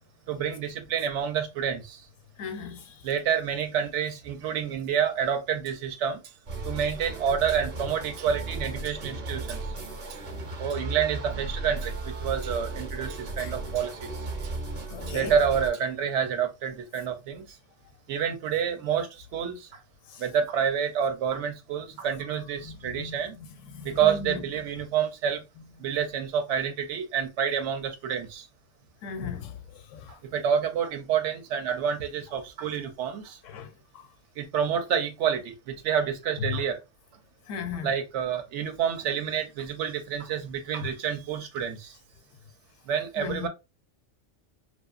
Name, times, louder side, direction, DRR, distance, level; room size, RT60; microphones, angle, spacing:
voice 1, 0.3-2.0 3.0-6.2 6.6-9.7 10.6-14.2 15.1-17.5 18.1-19.7 20.2-23.4 23.8-25.4 25.8-28.5 30.1-33.4 34.4-36.8 37.8-41.9 42.9-43.5, right 8 dB, 75° right, 0.9 m, -28 dB
voice 2, 2.4-3.1 13.4-13.5 14.9-15.3 20.1-20.2 22.1-22.2 22.6-24.4 29.0-30.1 33.4-33.7 33.9-34.1 36.4-36.6 37.5-37.9 43.2-43.5, left 6 dB, 85° left, 0.9 m, -37 dB
sound 1, 6.5-15.7, right 2 dB, 40° right, 0.6 m, -35 dB
2.7 x 2.3 x 2.3 m
omnidirectional pair, 1.3 m